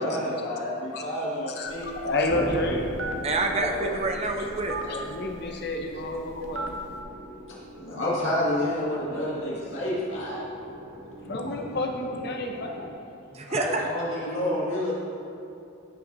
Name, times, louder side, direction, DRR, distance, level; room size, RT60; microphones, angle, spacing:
voice 1, 0.0-2.1 3.5-3.9 7.8-10.4 13.5-14.9, left 1 dB, 75° left, -7 dB, 1.8 m, -29 dB
voice 2, 1.5-2.8 4.8-6.8 11.2-12.9, left 2 dB, 50° left, 2 dB, 0.7 m, -30 dB
Telephone, 1.7-7.0, right 2 dB, 70° right, 0.7 m, -39 dB
sound 1, 2.3-12.9, equal, 50° right, 1.2 m, -41 dB
voice 3, 3.2-4.8 13.3-13.9, right 2 dB, 30° right, 3 dB, 0.6 m, -27 dB
14.5 x 5.8 x 2.7 m, 2.6 s
head